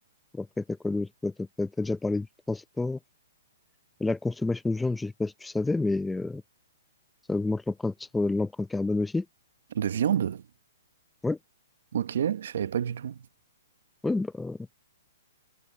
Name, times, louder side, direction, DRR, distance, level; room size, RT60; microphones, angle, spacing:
voice 1, 0.3-3.0 4.0-6.4 7.3-9.3 11.2-11.4 14.0-14.6, left 3 dB, 5° left, 0.5 m, -29 dB
voice 2, 9.7-10.4 11.9-13.3, right 9 dB, 65° right, 0.9 m, -28 dB
hypercardioid pair, 150°, 0 cm